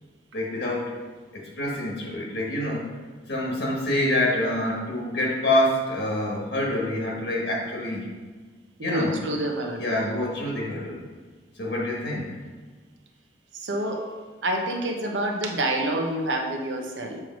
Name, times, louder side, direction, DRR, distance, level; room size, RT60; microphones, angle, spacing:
voice 1, 0.3-0.9 1.3-2.9 3.3-8.1 8.8-9.1 9.8-11.0 11.6-12.3, left 1 dB, 70° left, -2 dB, 1.3 m, -26 dB
voice 2, 8.8-10.0 13.5-14.1 14.4-17.2, right 1 dB, 85° right, 2 dB, 0.9 m, -28 dB
7.6 x 3.2 x 5.1 m, 1.4 s
head